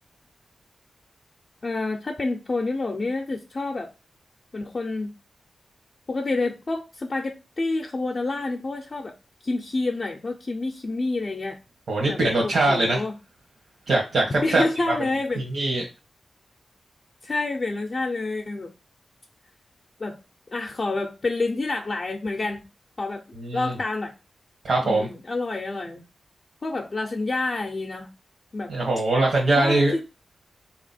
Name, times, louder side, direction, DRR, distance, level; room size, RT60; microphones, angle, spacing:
voice 1, 1.6-3.9 4.5-5.1 6.1-9.1 9.4-11.6 12.0-13.2 14.4-15.4 17.2-18.7 20.0-20.2 20.5-22.6 23.0-23.2 23.5-24.1 24.8-26.0 26.6-28.1 28.5-28.7 29.6-30.0, left 3 dB, 40° left, 0.5 m, -28 dB
voice 2, 11.9-13.0 13.9-14.9 15.5-15.8 23.4-23.7 24.6-25.1 28.7-29.9, right 2 dB, 65° right, 1.2 m, -22 dB
3.6 x 2.9 x 4.1 m
wide cardioid pair, 115°, 0 cm